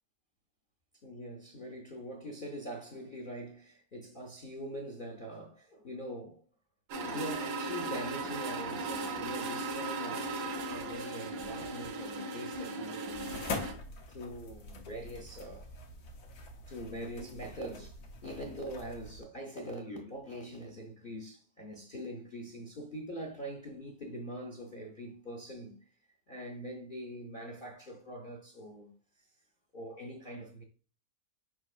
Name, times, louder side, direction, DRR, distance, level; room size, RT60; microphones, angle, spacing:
voice 1, 1.0-6.4 7.0-13.3 14.1-15.7 16.7-17.9 18.2-25.7 26.3-28.9 29.7-30.6, equal, 50° left, 0.6 m, -43 dB
sound 1, 6.9-13.7, right 2 dB, 80° right, 1.3 m, -37 dB
sound 2, 13.1-19.2, left 3 dB, 70° left, 1.2 m, -44 dB
4.9 x 4.3 x 2.4 m
omnidirectional pair, 1.7 m